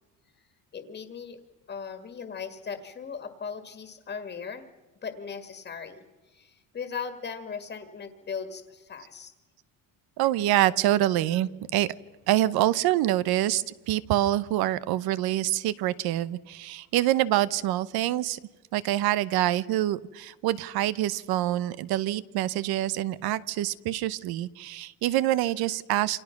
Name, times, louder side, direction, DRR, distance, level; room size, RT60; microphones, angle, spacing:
voice 1, 0.7-1.4 1.7-4.7 5.0-9.3, left 6 dB, 25° left, 7 dB, 1.8 m, -38 dB
voice 2, 10.2-11.9 12.3-18.4 18.7-26.2, right 14 dB, 75° right, 17 dB, 0.9 m, -26 dB
29.0 x 26.0 x 5.9 m, 1.2 s
cardioid pair, 175°, 37 cm